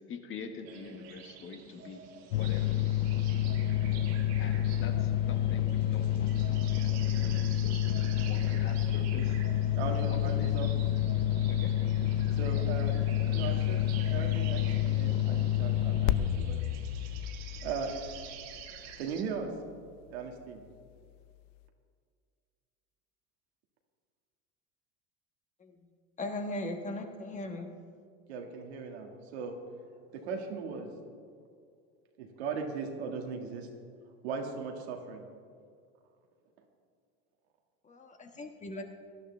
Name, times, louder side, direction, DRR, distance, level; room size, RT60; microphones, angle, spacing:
voice 1, 0.0-2.0 2.3-2.8 4.4-9.4 9.8-10.7 11.5-11.7, left 5 dB, 40° left, 5 dB, 1.5 m, -45 dB
sound 1, 0.6-19.2, right 7 dB, 55° right, 1.5 m, -49 dB
sound 2, 2.3-18.7, left 11 dB, 70° left, 0.6 m, -29 dB
voice 2, 9.8-10.7 11.0-11.1 12.4-13.8 14.1-16.6 17.6-17.9 19.0-19.5 20.1-20.6 28.3-29.6 30.1-30.9 32.2-33.7 34.2-35.2, right 5 dB, 90° right, 2 dB, 1.9 m, -38 dB
voice 3, 26.2-27.7 37.8-38.8, left 1 dB, 25° left, 4 dB, 1.3 m, -38 dB
18.0 x 12.0 x 3.4 m, 2.2 s
supercardioid pair, 110°, 31 cm